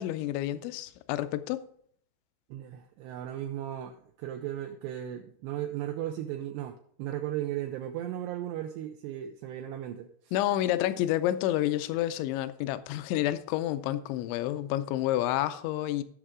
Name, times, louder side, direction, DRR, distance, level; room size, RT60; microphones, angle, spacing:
voice 1, 0.0-1.6 10.3-16.0, left 13 dB, 80° left, 2.8 m, -29 dB
voice 2, 2.5-10.1, right 12 dB, 85° right, 2.4 m, -36 dB
16.5 x 6.4 x 3.7 m
omnidirectional pair, 5.6 m